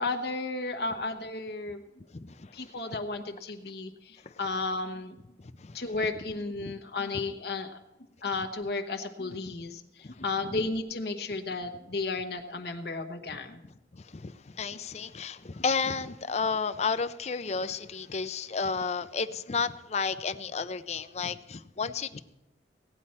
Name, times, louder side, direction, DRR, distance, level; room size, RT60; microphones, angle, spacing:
voice 1, 0.0-1.8 2.5-5.2 5.7-7.8 8.2-13.6, left 3 dB, 65° left, 5 dB, 1.1 m, -33 dB
voice 2, 2.1-2.8 4.2-4.3 5.6-5.8 10.0-10.2 13.9-22.2, left 5 dB, 40° left, 12 dB, 0.5 m, -32 dB
17.5 x 10.0 x 4.3 m, 0.95 s
head